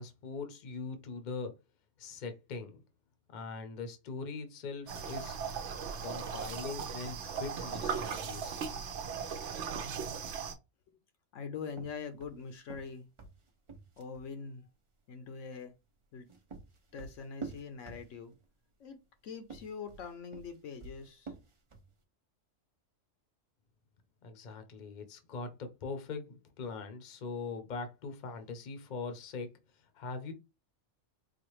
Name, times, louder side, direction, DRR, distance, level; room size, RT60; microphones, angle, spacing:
voice 1, 0.0-1.5 2.0-2.8 3.3-5.4 6.0-8.6 24.2-29.5 29.9-30.3, left 4 dB, 45° left, 0.7 m, -41 dB
sound 1, 4.9-10.5, right 6 dB, 65° right, 0.9 m, -38 dB
voice 2, 11.3-13.1 14.0-14.7 15.1-15.7 16.1-16.3 16.9-18.3 18.8-19.0 19.2-21.3, left 5 dB, 75° left, 1.0 m, -43 dB
sound 2, 11.7-14.3 16.0-18.5 19.4-22.0, right 4 dB, 40° right, 0.4 m, -48 dB
4.1 x 2.5 x 3.0 m
omnidirectional pair, 1.3 m